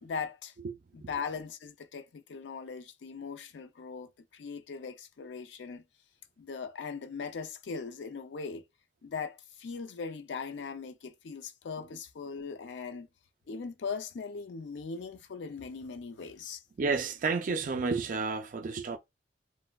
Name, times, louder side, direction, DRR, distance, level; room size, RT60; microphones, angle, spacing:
voice 1, 0.0-0.5 0.9-5.8 6.4-8.6 9.0-13.1 13.5-16.6, left 5 dB, 70° left, 0.4 m, -39 dB
voice 2, 16.8-19.0, right 4 dB, 45° right, 0.4 m, -31 dB
3.3 x 2.1 x 2.2 m
head